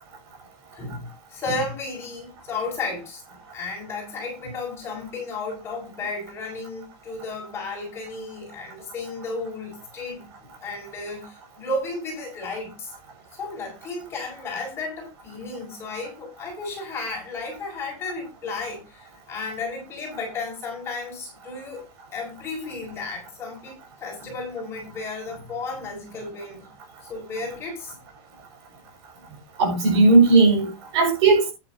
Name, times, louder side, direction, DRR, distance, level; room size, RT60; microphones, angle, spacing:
voice 1, 0.7-12.9 13.3-21.9 22.1-26.7 27.1-28.0 29.1-29.2, left 3 dB, 15° left, 7.1 m, -33 dB
voice 2, 29.6-31.5, right 3 dB, 45° right, 6.6 m, -17 dB
13.5 x 10.5 x 2.9 m
supercardioid pair, 180°, 18 cm